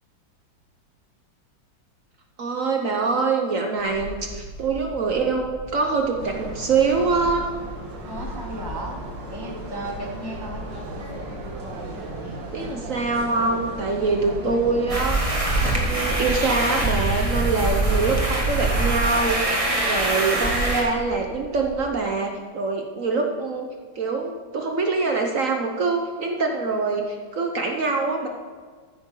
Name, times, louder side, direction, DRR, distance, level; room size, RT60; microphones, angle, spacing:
voice 1, 2.4-7.5 12.5-23.7 24.0-28.3, right 4 dB, 55° right, 3 dB, 1.1 m, -24 dB
sound 1, 3.8-21.9, left 1 dB, 80° left, 3.1 m, -41 dB
sound 2, 6.2-15.0, right 2 dB, 70° right, 2.3 m, -36 dB
voice 2, 8.0-9.0 9.3-10.6, right 1 dB, 20° left, 0 dB, 0.8 m, -35 dB
sound 3, 14.9-20.8, right 2 dB, 20° right, 1.6 m, -23 dB
13.5 x 9.6 x 3.8 m, 1.5 s
omnidirectional pair, 2.0 m